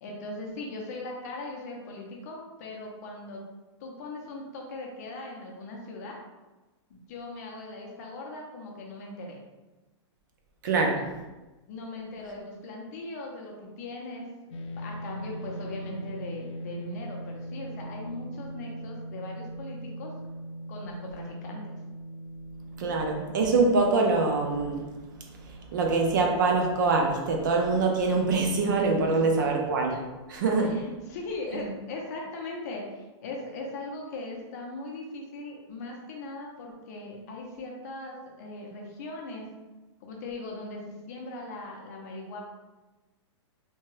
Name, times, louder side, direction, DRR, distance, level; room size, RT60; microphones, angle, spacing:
voice 1, 0.0-3.4 3.8-6.2 6.9-9.4 11.7-14.3 14.7-20.1 20.7-21.8 29.1-29.2 30.5-39.5 40.0-40.8 41.1-42.4, left 2 dB, 35° left, 0 dB, 0.6 m, -39 dB
voice 2, 10.6-11.0 22.8-24.9 25.4-30.8 31.5-31.7, right 3 dB, 40° right, 1 dB, 0.4 m, -24 dB
sound 1, 14.5-28.9, right 1 dB, 85° left, 0.4 m, -41 dB
2.8 x 2.2 x 3.1 m, 1.1 s
hypercardioid pair, 175°, 15 cm